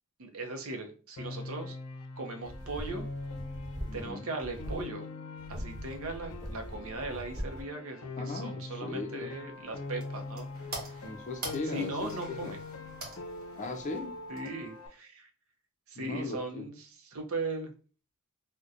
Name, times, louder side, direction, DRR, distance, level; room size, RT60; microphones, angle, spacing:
voice 1, 0.2-1.8 2.2-3.1 3.9-5.1 5.5-11.0 11.7-12.6 14.3-15.3 15.9-16.8 17.0-17.7, right 2 dB, 70° right, 4 dB, 0.6 m, -38 dB
Piano, 1.2-14.9, left 3 dB, 90° left, 0.5 m, -43 dB
sound 1, 2.4-4.1 4.4-4.8 5.4-7.6, equal, 20° right, 1.0 m, -41 dB
voice 2, 3.9-4.3 8.2-9.3 11.0-12.6 13.6-14.2 16.0-16.7, left 3 dB, 35° left, 5 dB, 0.4 m, -38 dB
sound 2, 9.5-14.9, right 2 dB, 45° right, 1.1 m, -46 dB
4.0 x 2.1 x 2.4 m, 0.37 s
head